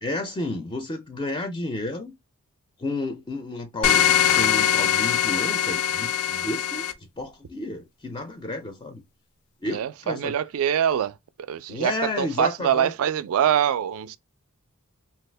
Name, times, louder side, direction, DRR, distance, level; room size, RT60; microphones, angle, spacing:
voice 1, 0.0-2.1 2.8-9.0 9.6-10.4 11.7-12.9, left 2 dB, 20° left, 0.4 m, -32 dB
sound 1, 3.8-6.9, left 9 dB, 85° left, 0.4 m, -22 dB
voice 2, 9.7-11.1 11.5-14.2, right 9 dB, 65° right, 0.3 m, -24 dB
2.7 x 2.3 x 3.2 m
head